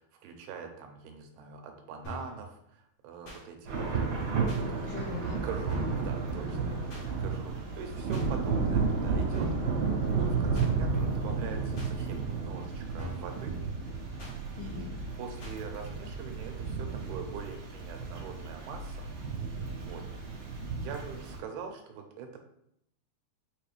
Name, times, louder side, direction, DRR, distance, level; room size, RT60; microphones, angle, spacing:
voice 1, 0.0-4.0 4.7-5.0 5.4-9.5 10.2-13.6 14.6-14.9 15.1-19.0 19.8-22.4, right 6 dB, 85° right, 4 dB, 2.6 m, -44 dB
sound 1, 2.0-2.4 3.2-3.4 4.5-4.6 5.7-6.0 6.9-7.1 8.1-8.3 9.3-9.7 10.5-10.7 11.8-11.9 13.0-13.3 14.2-14.4 15.4-15.6, equal, 55° left, 1.5 m, -43 dB
Thunder / Rain, 3.7-21.4, right 4 dB, 55° right, 2.6 m, -32 dB
voice 2, 4.8-5.4 14.6-14.9, left 6 dB, 85° left, -2 dB, 2.0 m, -40 dB
6.3 x 2.5 x 3.3 m, 0.75 s
omnidirectional pair, 4.5 m